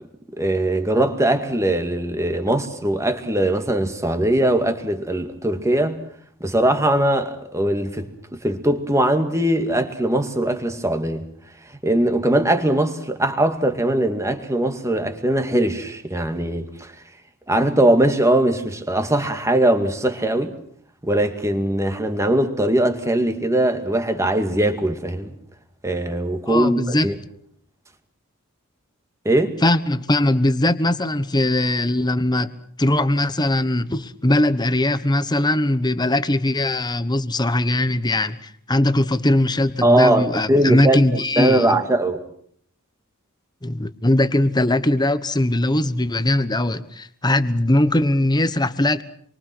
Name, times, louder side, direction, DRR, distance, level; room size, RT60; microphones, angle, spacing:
voice 1, 0.3-6.0 6.4-11.3 11.8-16.9 17.5-20.6 21.0-25.3 25.8-27.1 29.2-29.6 39.8-42.2, right 1 dB, 15° right, 2.2 m, -20 dB
voice 2, 26.5-27.1 29.6-32.5 32.8-41.8 43.6-49.0, left 1 dB, 20° left, 1.2 m, -20 dB
28.0 x 23.5 x 6.2 m
head